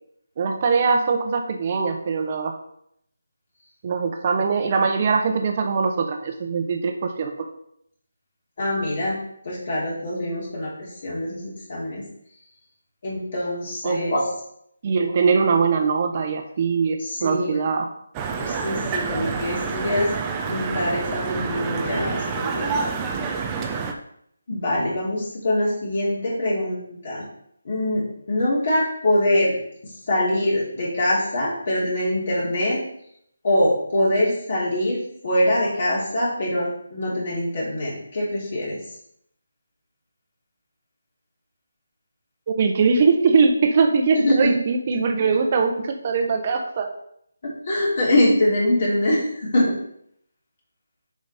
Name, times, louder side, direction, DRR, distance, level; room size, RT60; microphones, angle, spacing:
voice 1, 0.4-2.5 3.8-7.3 13.8-14.0 14.8-17.9 42.5-46.9, right 5 dB, 35° right, 4 dB, 1.0 m, -21 dB
voice 2, 8.6-9.2 9.4-12.0 13.0-14.3 17.0-17.6 18.4-20.1 20.4-22.9 24.5-27.2 27.6-29.6 30.1-32.8 33.4-38.8 44.1-44.6 47.6-49.7, left 1 dB, 45° left, -6 dB, 2.8 m, -23 dB
sound 1, 18.1-23.9, right 5 dB, 15° right, 0.6 m, -28 dB
6.9 x 5.2 x 4.2 m, 0.72 s
figure-of-eight pair, 165°, 0 cm